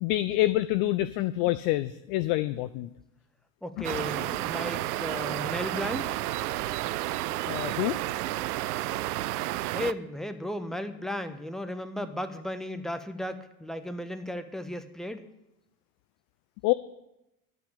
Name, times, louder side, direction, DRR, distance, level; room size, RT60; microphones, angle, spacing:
voice 1, 0.0-2.9 3.8-3.9 7.5-8.0 16.6-16.7, left 16 dB, 50° left, 15 dB, 0.6 m, -27 dB
voice 2, 3.6-6.2 9.7-15.2, left 1 dB, ahead, 9 dB, 1.2 m, -35 dB
sound 1, 3.8-9.9, right 15 dB, 70° right, 0.6 m, -31 dB
12.0 x 8.4 x 8.4 m, 0.88 s
figure-of-eight pair, 65°, 47 cm